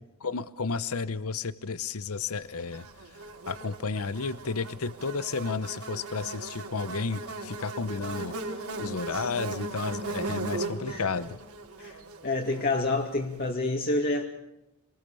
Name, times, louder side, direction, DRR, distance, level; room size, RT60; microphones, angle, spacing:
voice 1, 0.2-2.9 3.5-8.3 8.8-11.4, left 4 dB, 75° left, 16 dB, 0.9 m, -32 dB
Buzz, 2.7-13.1, right 2 dB, 80° right, 4.1 m, -38 dB
voice 2, 9.1-9.4 10.9-11.0 11.8-14.2, left 2 dB, 45° left, 0 dB, 2.6 m, -29 dB
26.5 x 20.0 x 7.0 m, 0.87 s
head